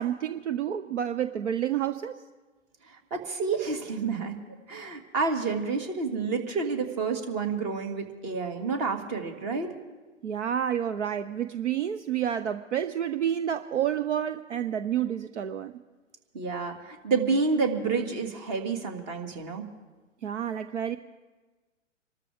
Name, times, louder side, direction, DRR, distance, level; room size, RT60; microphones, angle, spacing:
voice 1, 0.0-2.2 10.2-15.7 20.2-21.0, right 9 dB, 70° right, 11 dB, 0.8 m, -29 dB
voice 2, 2.8-4.4 4.7-9.7 16.3-19.7, right 4 dB, 35° right, 5 dB, 2.4 m, -29 dB
26.5 x 13.0 x 3.6 m, 1.3 s
figure-of-eight pair, 120°, 37 cm